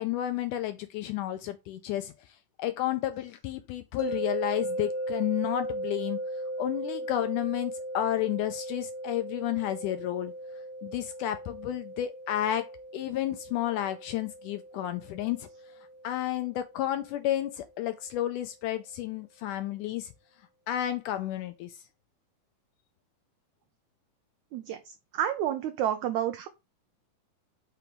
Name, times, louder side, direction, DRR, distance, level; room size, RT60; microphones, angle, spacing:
voice 1, 0.0-6.2 6.6-10.3 10.8-15.5 16.0-20.1 20.7-21.8, left 12 dB, 80° left, 1.9 m, -31 dB
sound 1, 4.0-17.1, right 1 dB, 55° left, 1.3 m, -37 dB
voice 2, 25.1-26.5, right 10 dB, 85° right, 1.6 m, -29 dB
6.0 x 4.5 x 5.2 m
omnidirectional pair, 4.1 m